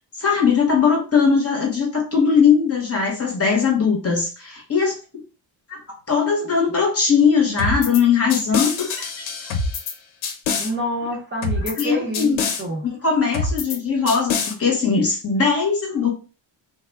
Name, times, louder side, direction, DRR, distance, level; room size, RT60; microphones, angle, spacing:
voice 1, 0.2-5.0 5.7-5.8 6.1-9.3 11.8-12.4 12.8-16.1, left 6 dB, 30° left, 0 dB, 0.8 m, -20 dB
sound 1, 7.6-8.0 8.3-9.9 10.2-10.7 11.4-11.9 12.1-12.6 13.3-13.8 14.1-14.5, left 4 dB, 75° left, 0.7 m, -25 dB
voice 2, 10.6-12.8, equal, 25° right, -3 dB, 0.7 m, -27 dB
3.3 x 2.1 x 3.4 m, 0.35 s
wide cardioid pair, 170°, 48 cm